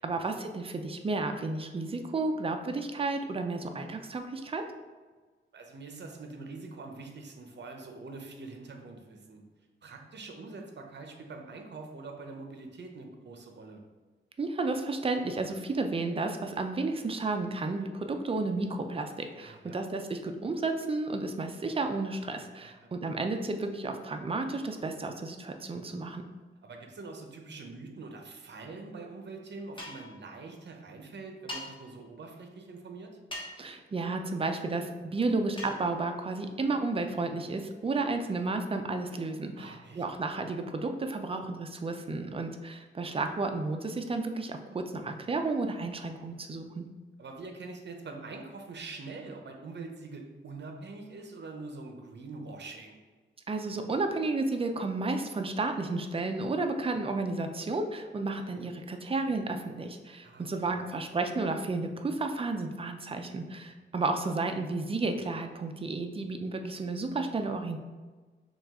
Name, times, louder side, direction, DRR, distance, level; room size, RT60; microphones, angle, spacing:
voice 1, 0.0-4.6 14.4-26.2 33.6-46.8 53.5-67.8, right 3 dB, 25° right, 6 dB, 0.4 m, -32 dB
voice 2, 5.5-9.4 9.8-13.8 19.4-19.8 22.6-22.9 26.6-33.2 39.6-40.0 47.2-53.0 60.2-60.7, right 3 dB, 60° right, 3 dB, 0.7 m, -44 dB
sound 1, 29.8-30.1 31.5-31.6 33.3-33.7 35.6-35.8, left 1 dB, 25° left, 1.1 m, -40 dB
6.0 x 2.4 x 3.6 m, 1.3 s
wide cardioid pair, 115°, 21 cm